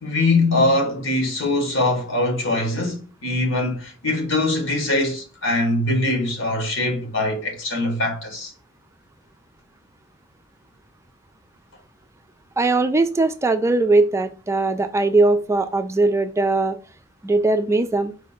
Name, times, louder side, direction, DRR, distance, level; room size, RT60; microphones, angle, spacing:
voice 1, 0.0-8.5, left 2 dB, 85° left, 1.4 m, -22 dB
voice 2, 12.6-16.8 17.2-18.1, right 2 dB, 15° right, 0.3 m, -20 dB
4.6 x 2.5 x 4.2 m
head